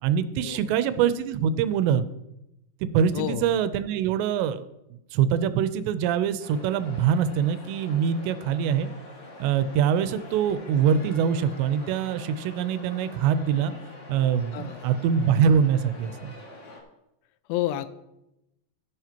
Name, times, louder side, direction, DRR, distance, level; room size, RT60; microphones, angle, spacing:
voice 1, 0.0-2.1 2.8-4.6 5.1-8.9 9.4-13.7 14.1-16.3, right 8 dB, 85° right, 12 dB, 2.8 m, -24 dB
voice 2, 3.1-3.5 14.5-14.8 17.5-17.9, left 14 dB, 85° left, 13 dB, 2.7 m, -29 dB
sound 1, 6.4-16.8, left 1 dB, 45° left, 1.4 m, -45 dB
14.0 x 11.0 x 2.9 m, 0.89 s
omnidirectional pair, 4.9 m